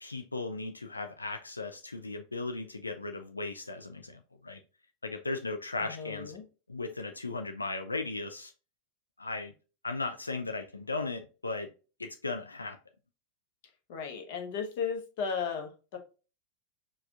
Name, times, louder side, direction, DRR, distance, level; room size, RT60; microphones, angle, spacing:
voice 1, 0.0-4.6 5.0-6.4 6.7-8.5 9.2-9.5 9.8-11.7 12.0-12.8, left 3 dB, 80° left, 0.4 m, -37 dB
voice 2, 5.8-6.4 13.9-16.0, left 6 dB, 50° left, 1.0 m, -35 dB
4.7 x 2.4 x 3.6 m
figure-of-eight pair, 90°, 0 cm